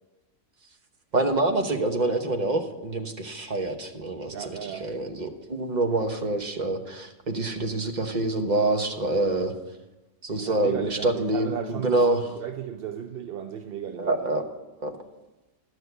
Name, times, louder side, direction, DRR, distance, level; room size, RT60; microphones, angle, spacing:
voice 1, 1.1-9.5 10.2-12.4 14.0-14.4 14.8-14.9, right 2 dB, 35° right, 1.1 m, -26 dB
voice 2, 4.3-4.8 10.4-12.1 12.4-14.1, right 9 dB, 60° right, 0.6 m, -35 dB
12.5 x 6.4 x 8.0 m
omnidirectional pair, 1.5 m